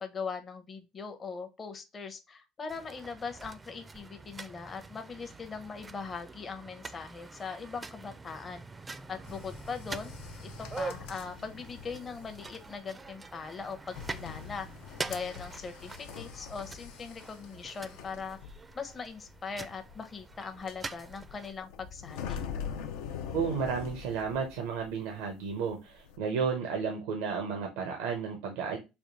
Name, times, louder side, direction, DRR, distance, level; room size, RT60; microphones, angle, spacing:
voice 1, 0.0-10.1 10.4-14.7 15.0-18.4 18.7-22.4, left 5 dB, 35° left, 0.7 m, -40 dB
sound 1, 2.7-21.5, right 3 dB, 20° right, 0.4 m, -45 dB
sound 2, 9.2-25.2 25.4-26.2, left 7 dB, 85° left, 0.4 m, -44 dB
voice 2, 23.3-28.8, right 6 dB, 90° right, 0.6 m, -32 dB
3.5 x 2.3 x 3.9 m
supercardioid pair, 90°, 0 cm